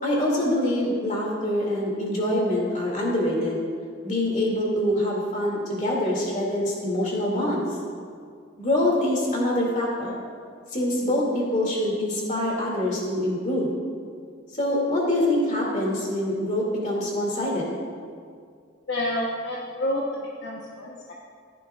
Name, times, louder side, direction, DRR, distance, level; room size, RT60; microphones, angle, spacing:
voice 1, 0.0-3.6 4.0-7.7 8.6-10.1 10.7-13.7 14.6-17.7, left 1 dB, 35° left, -3 dB, 2.4 m, -25 dB
voice 2, 18.9-21.1, left 1 dB, 55° left, -3 dB, 1.0 m, -29 dB
14.5 x 11.0 x 2.4 m, 2.2 s
head